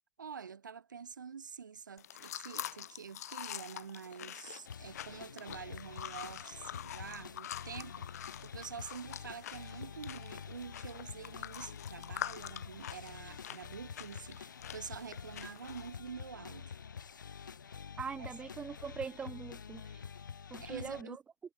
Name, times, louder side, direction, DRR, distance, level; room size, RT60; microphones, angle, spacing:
voice 1, 0.2-16.8 18.2-18.3 20.6-21.2, right 6 dB, 75° right, 2.2 m, -47 dB
sound 1, 2.0-16.0, left 11 dB, 55° left, 2.1 m, -46 dB
sound 2, 4.7-21.0, left 6 dB, 80° left, 0.7 m, -48 dB
voice 2, 18.0-20.0 20.5-21.2, right 6 dB, 10° right, 0.5 m, -42 dB
hypercardioid pair, 130°, 10 cm